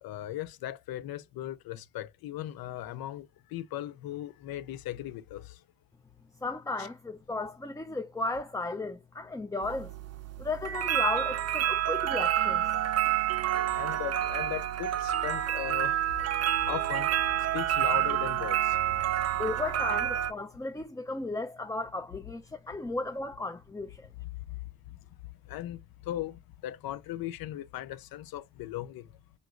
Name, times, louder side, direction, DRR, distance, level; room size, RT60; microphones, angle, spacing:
voice 1, 0.0-5.6 6.8-6.9 13.7-16.0 16.6-17.1 17.4-18.8 25.5-25.8 26.1-29.0, left 13 dB, 85° left, 0.5 m, -38 dB
voice 2, 6.4-9.9 10.4-12.6 19.4-24.1, left 3 dB, 10° left, 0.4 m, -35 dB
sound 1, 9.6-20.3, right 11 dB, 45° right, 0.5 m, -28 dB
5.1 x 2.9 x 2.4 m
cardioid pair, 75°, 35 cm